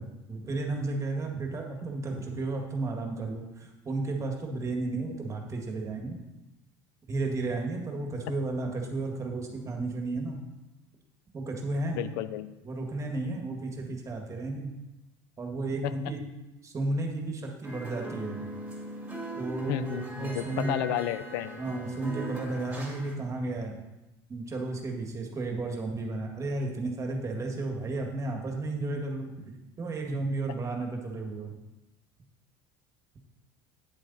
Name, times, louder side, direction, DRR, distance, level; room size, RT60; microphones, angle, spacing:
voice 1, 0.0-6.2 7.1-10.4 11.3-12.0 12.6-14.7 15.4-16.2 16.6-18.4 19.4-20.7 21.6-23.8 24.3-29.5 29.8-31.5, right 2 dB, 25° right, 2 dB, 1.9 m, -33 dB
voice 2, 12.0-12.5 15.8-15.9 19.7-21.6, left 12 dB, 80° left, 13 dB, 0.5 m, -32 dB
sound 1, 17.6-23.2, right 2 dB, 10° right, 2.3 m, -40 dB
9.0 x 8.0 x 4.2 m, 1.0 s
supercardioid pair, 105°, 11 cm